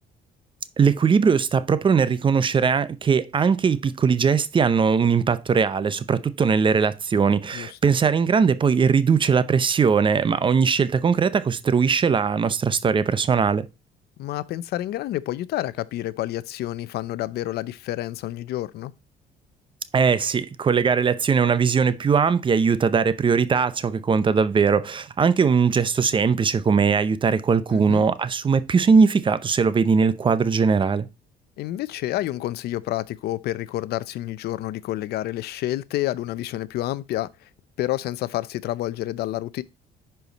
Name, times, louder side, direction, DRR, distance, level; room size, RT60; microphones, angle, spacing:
voice 1, 0.8-13.7 19.9-31.1, right 5 dB, 30° right, 0.7 m, -20 dB
voice 2, 14.2-18.9 27.7-28.0 31.6-37.5 37.8-39.6, left 14 dB, 70° left, 0.6 m, -29 dB
10.5 x 4.6 x 4.0 m
cardioid pair, 110°, 17 cm